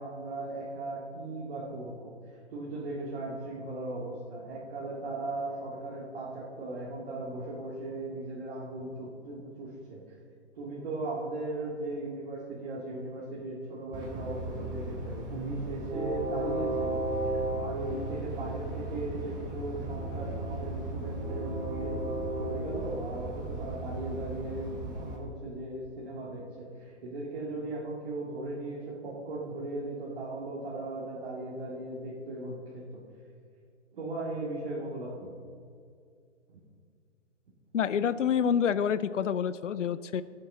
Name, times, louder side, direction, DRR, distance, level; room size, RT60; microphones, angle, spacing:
voice 1, 0.0-2.1 2.5-10.0 10.6-33.0 33.9-35.3 36.5-36.6, right 2 dB, 50° right, -7 dB, 2.3 m, -38 dB
Train, 13.9-25.2, right 1 dB, 10° right, 0.9 m, -35 dB
voice 2, 37.7-40.2, left 8 dB, 85° left, 16 dB, 0.6 m, -27 dB
19.5 x 7.6 x 3.7 m, 2.3 s
hypercardioid pair, 150°, 36 cm